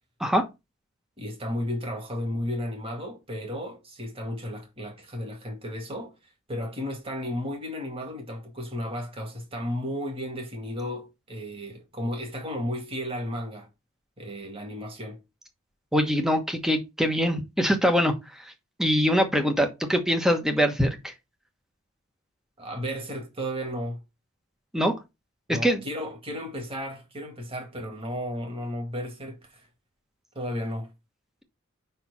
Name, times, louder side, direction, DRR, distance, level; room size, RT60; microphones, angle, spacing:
voice 1, 1.2-6.1 6.5-13.7 14.2-15.2 22.6-24.0 25.5-29.7 30.3-30.9, equal, 30° right, 2.1 m, -33 dB
voice 2, 15.9-18.1 18.8-21.0 24.7-24.9 25.6-25.8, equal, ahead, 1.2 m, -23 dB
5.6 x 4.6 x 5.6 m
head